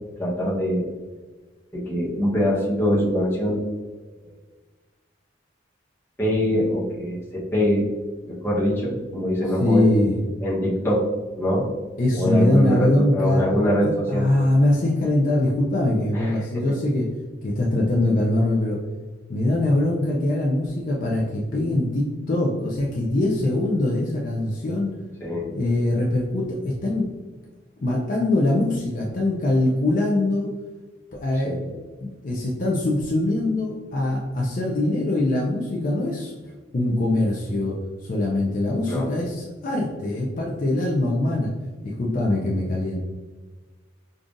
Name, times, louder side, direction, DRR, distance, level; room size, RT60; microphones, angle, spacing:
voice 1, 0.2-0.9 1.7-3.6 4.2-4.3 6.2-7.9 8.2-9.9 10.4-11.1 11.4-11.7 12.1-14.3 16.1-16.8 25.2-25.5 31.5-31.8 38.9-39.1, equal, 15° left, -6 dB, 0.9 m, -23 dB
voice 2, 9.6-10.2 12.0-13.4 13.8-17.1 17.4-18.8 19.3-24.9 25.5-27.1 27.8-30.5 31.1-31.6 32.0-36.3 36.7-41.5 41.8-43.0, left 1 dB, 45° left, -2 dB, 0.4 m, -22 dB
5.2 x 2.4 x 2.5 m, 1.3 s
head